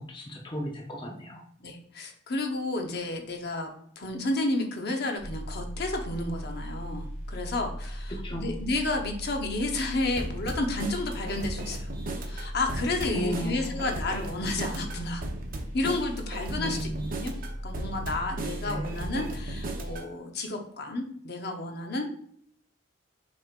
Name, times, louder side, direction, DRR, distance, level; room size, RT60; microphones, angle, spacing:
voice 1, 0.0-1.4 8.1-8.5 13.1-13.8 16.6-17.1 18.6-18.9, equal, 25° left, 0 dB, 0.6 m, -35 dB
voice 2, 1.6-3.7 4.0-11.9 12.2-15.2 15.7-17.3 17.6-22.0, left 2 dB, 55° left, 3 dB, 0.8 m, -31 dB
sound 1, 5.2-19.9, equal, 75° left, 1.4 m, -38 dB
sound 2, 10.2-20.1, right 2 dB, 45° right, 0.6 m, -38 dB
6.0 x 3.6 x 2.4 m, 0.66 s
head